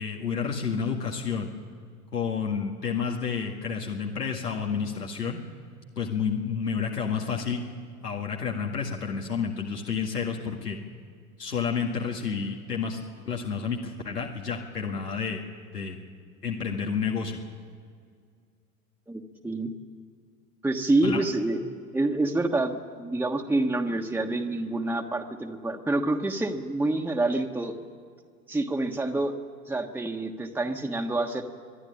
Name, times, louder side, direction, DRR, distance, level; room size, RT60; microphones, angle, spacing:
voice 1, 0.0-1.5 2.1-5.4 6.0-7.6 8.0-10.8 11.4-13.0 13.3-15.4 15.7-16.0 16.4-17.4 21.0-21.2, left 6 dB, 90° left, 0 dB, 2.0 m, -30 dB
voice 2, 19.1-19.7 20.6-21.6 21.9-27.7 28.5-29.3 29.7-31.4, right 2 dB, 5° right, 2 dB, 1.3 m, -27 dB
24.0 x 12.0 x 9.8 m, 2.1 s
hypercardioid pair, 90°, 46 cm